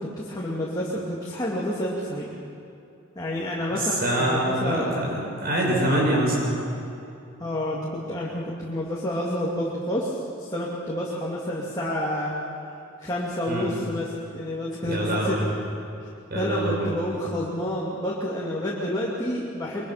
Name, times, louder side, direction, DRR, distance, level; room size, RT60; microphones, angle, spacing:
voice 1, 0.0-2.3 3.1-5.0 7.4-12.4 13.0-15.4 16.3-19.8, left 1 dB, 20° left, -6 dB, 2.7 m, -29 dB
voice 2, 3.7-6.6 13.5-13.7 14.8-15.5 16.3-16.9, right 1 dB, 45° right, -2 dB, 6.7 m, -25 dB
24.0 x 23.5 x 5.9 m, 2.7 s
head